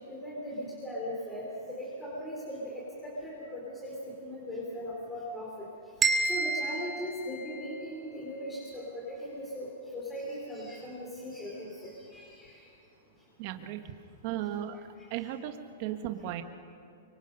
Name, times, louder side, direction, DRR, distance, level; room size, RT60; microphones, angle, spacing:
voice 1, 0.1-5.7 6.3-12.7 15.1-15.2, equal, 10° left, -5 dB, 3.9 m, -39 dB
sound 1, 6.0-8.0, right 3 dB, 15° right, 1.9 m, -30 dB
voice 2, 13.4-13.8 14.2-14.8 15.1-16.4, right 12 dB, 45° right, 7 dB, 1.4 m, -35 dB
25.0 x 24.5 x 5.4 m, 2.6 s
hypercardioid pair, 150°, 0 cm